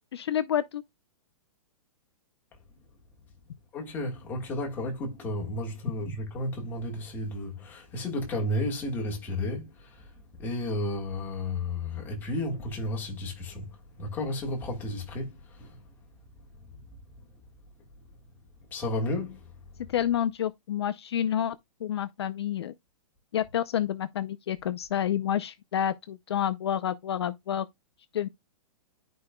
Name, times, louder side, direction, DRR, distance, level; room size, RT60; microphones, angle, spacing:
voice 1, 0.1-0.8 19.9-22.7 23.3-27.7 28.1-28.3, left 10 dB, 45° left, 0.5 m, -29 dB
voice 2, 3.7-10.1 10.4-13.7 14.0-15.8 18.7-19.4, left 1 dB, 10° left, 1.6 m, -32 dB
11.5 x 5.2 x 2.2 m
hypercardioid pair, 175°, 18 cm